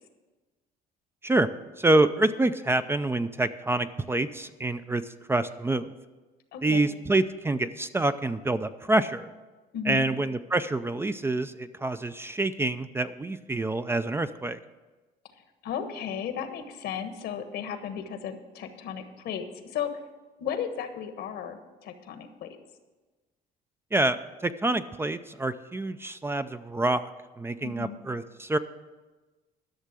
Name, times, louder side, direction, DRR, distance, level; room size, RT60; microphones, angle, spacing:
voice 1, 1.8-5.9 6.6-9.3 9.8-14.6 23.9-27.1 27.4-28.6, right 2 dB, 15° right, 11 dB, 0.4 m, -27 dB
voice 2, 6.5-6.8 9.7-10.1 15.6-19.9 20.4-22.5 27.6-28.0, left 8 dB, 75° left, 8 dB, 1.3 m, -35 dB
11.5 x 6.5 x 7.5 m, 1.2 s
cardioid pair, 110°, 17 cm